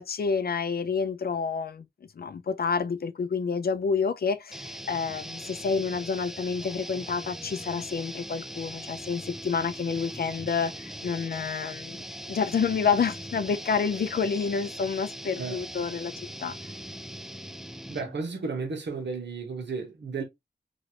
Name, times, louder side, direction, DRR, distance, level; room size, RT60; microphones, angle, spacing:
voice 1, 0.0-1.9 2.2-12.0 12.3-16.6, left 5 dB, 60° left, 0.4 m, -29 dB
sound 1, 4.5-18.2, equal, ahead, 0.4 m, -40 dB
voice 2, 17.9-20.2, right 4 dB, 80° right, 1.2 m, -33 dB
3.1 x 2.5 x 2.8 m
cardioid pair, 50°, 18 cm